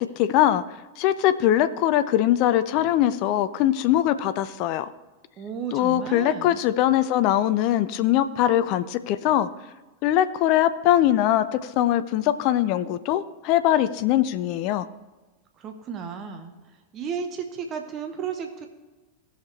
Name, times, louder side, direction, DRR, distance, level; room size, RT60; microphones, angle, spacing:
voice 1, 0.2-0.6 1.0-4.9 5.7-9.5 10.0-14.9, left 12 dB, 45° left, 13 dB, 0.4 m, -22 dB
voice 2, 5.4-6.6 15.6-16.5 16.9-18.7, right 6 dB, 30° right, 5 dB, 1.0 m, -33 dB
17.0 x 6.5 x 3.3 m, 1.2 s
figure-of-eight pair, 90°, 0 cm